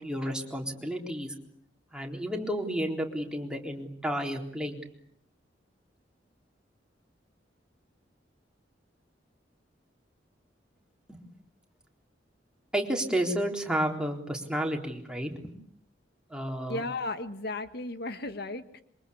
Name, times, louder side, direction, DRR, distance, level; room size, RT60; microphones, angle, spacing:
voice 1, 0.0-1.3 1.9-4.8 11.1-11.2 12.7-15.5 16.3-16.8, equal, 5° right, 1 dB, 3.9 m, -31 dB
voice 2, 16.7-18.8, left 2 dB, 65° left, 10 dB, 1.5 m, -35 dB
27.0 x 24.0 x 8.5 m, 0.66 s
head